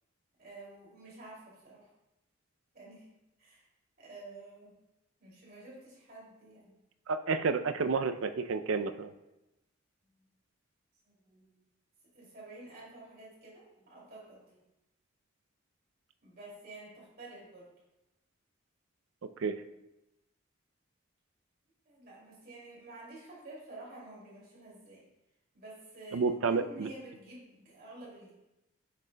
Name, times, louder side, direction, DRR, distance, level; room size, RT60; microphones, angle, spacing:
voice 1, 0.4-1.9 2.7-3.1 3.4-3.6 4.0-4.7 5.2-6.7 10.2-10.3 11.1-11.6 12.1-14.6 16.2-17.7 21.9-25.1 25.5-26.2 26.5-28.3, right 2 dB, 50° right, -5 dB, 2.5 m, -50 dB
voice 2, 7.1-9.1 19.4-19.6 26.1-26.9, right 4 dB, 80° right, 10 dB, 0.4 m, -30 dB
8.4 x 6.5 x 2.2 m, 0.94 s
head